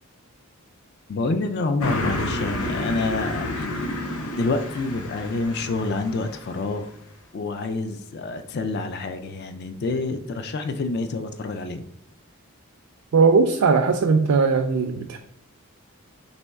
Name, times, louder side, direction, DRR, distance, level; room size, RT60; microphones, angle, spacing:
voice 1, 1.1-4.1 4.3-6.9 7.3-11.9, left 3 dB, 45° left, 9 dB, 0.3 m, -27 dB
Car passing by, 1.8-6.8, left 1 dB, 85° left, 0.6 m, -30 dB
voice 2, 13.1-15.2, right 4 dB, 80° right, 4 dB, 0.4 m, -19 dB
4.2 x 3.0 x 3.4 m, 0.70 s
head